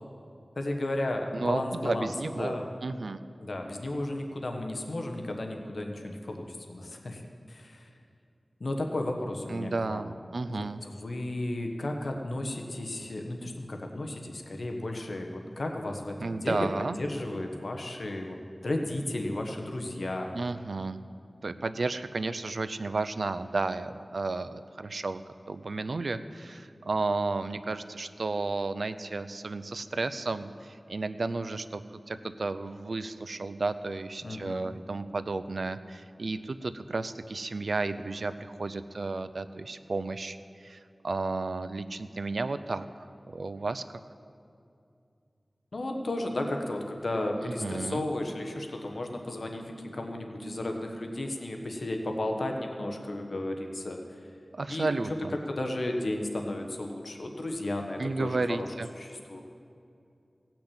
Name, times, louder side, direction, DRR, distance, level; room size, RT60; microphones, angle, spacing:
voice 1, 0.6-2.7 3.4-7.2 7.5-7.9 8.6-10.2 10.5-16.7 17.0-18.4 18.6-20.3 34.2-34.7 45.7-54.0 54.7-55.2 55.5-58.7 59.0-59.4, left 1 dB, 75° left, 3 dB, 1.2 m, -34 dB
voice 2, 1.3-3.2 9.5-10.8 16.2-17.0 20.3-21.0 21.4-25.2 25.5-42.9 43.3-43.8 47.4-48.0 54.5-55.3 58.0-58.9, right 3 dB, 80° right, 12 dB, 0.5 m, -33 dB
17.0 x 6.0 x 8.7 m, 2.5 s
wide cardioid pair, 65°, 0 cm